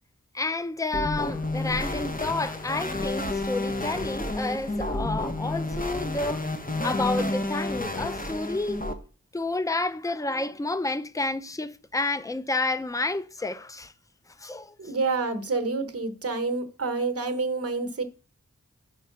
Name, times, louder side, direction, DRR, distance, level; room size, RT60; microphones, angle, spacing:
voice 1, 0.3-6.5 6.8-8.8 9.3-13.9 14.4-14.8, left 2 dB, 10° left, 0.5 m, -30 dB
sound 1, 0.9-8.9, left 2 dB, 30° left, 1.0 m, -30 dB
voice 2, 14.8-18.0, right 3 dB, 50° right, 1.0 m, -28 dB
6.2 x 4.6 x 5.7 m
wide cardioid pair, 60°, 30 cm